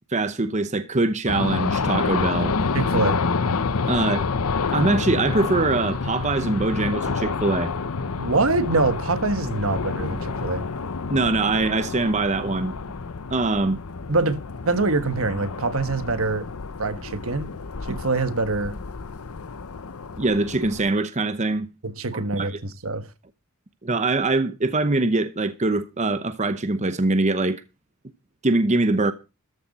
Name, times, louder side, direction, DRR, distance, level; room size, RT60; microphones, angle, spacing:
voice 1, 0.1-2.5 3.9-4.3 4.7-7.7 11.1-12.7 13.3-13.8 20.2-21.7 22.1-22.6 23.8-27.6 28.4-29.1, right 2 dB, 35° right, 0.9 m, -23 dB
sound 1, 1.3-20.9, left 4 dB, 85° left, 0.8 m, -28 dB
voice 2, 2.7-3.2 8.2-10.7 14.1-14.4 14.6-16.5 16.8-17.5 17.9-18.7 21.8-23.1, right 3 dB, 70° right, 1.4 m, -24 dB
14.0 x 10.5 x 4.1 m
head